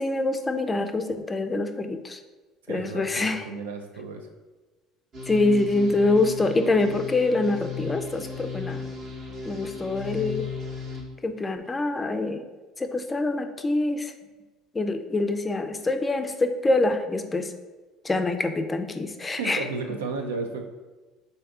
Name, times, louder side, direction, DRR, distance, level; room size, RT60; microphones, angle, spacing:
voice 1, 0.0-2.2 2.7-3.4 5.3-8.8 9.4-10.5 11.2-12.4 12.8-14.1 14.7-17.5 18.0-19.6, left 2 dB, 20° left, 7 dB, 0.4 m, -25 dB
voice 2, 2.7-4.3 19.3-20.6, right 4 dB, 85° right, 4 dB, 0.4 m, -33 dB
sound 1, 5.1-11.0, left 4 dB, 45° right, 0.9 m, -35 dB
3.5 x 2.7 x 3.5 m, 1.2 s
hypercardioid pair, 70°, 0 cm